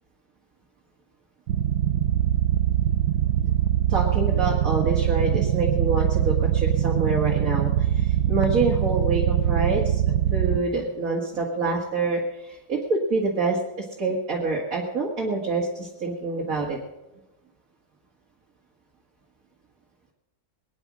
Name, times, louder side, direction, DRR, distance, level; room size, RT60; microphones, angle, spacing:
sound 1, 1.5-10.6, right 11 dB, 80° right, 1.4 m, -23 dB
voice 1, 3.9-10.0 10.3-13.6 14.0-16.8, right 3 dB, 50° right, -2 dB, 2.4 m, -26 dB
21.5 x 10.0 x 6.1 m, 1.0 s
omnidirectional pair, 1.9 m